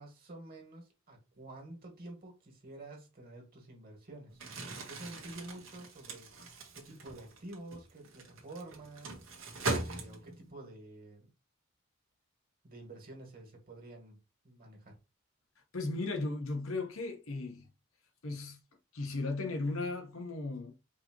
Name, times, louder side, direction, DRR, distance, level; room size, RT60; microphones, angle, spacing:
voice 1, 0.0-4.4 4.7-11.3 12.6-14.2 14.4-15.0, right 2 dB, 45° right, 1.8 m, -49 dB
Crumpling crinkling, 4.3-10.5, right 2 dB, 70° right, 1.2 m, -40 dB
voice 2, 15.7-17.7 18.2-18.6 18.9-20.7, left 2 dB, 85° left, 1.0 m, -36 dB
4.8 x 2.9 x 2.9 m
head